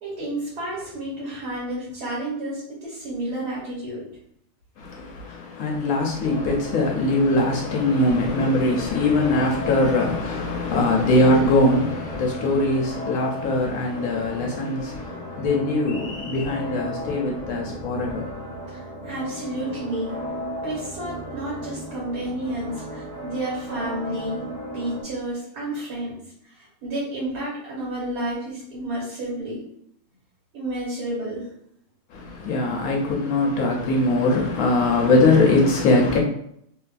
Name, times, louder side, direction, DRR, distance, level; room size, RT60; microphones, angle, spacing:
voice 1, 0.0-4.0 15.1-15.2 18.7-20.1 20.6-24.4 24.7-29.6 30.5-31.5, right 1 dB, 75° right, 1.7 m, -31 dB
voice 2, 4.8-18.5 32.1-36.2, left 2 dB, 70° left, 0.9 m, -21 dB
sound 1, 6.2-25.0, equal, 60° right, 1.4 m, -35 dB
3.1 x 2.4 x 2.4 m
omnidirectional pair, 1.7 m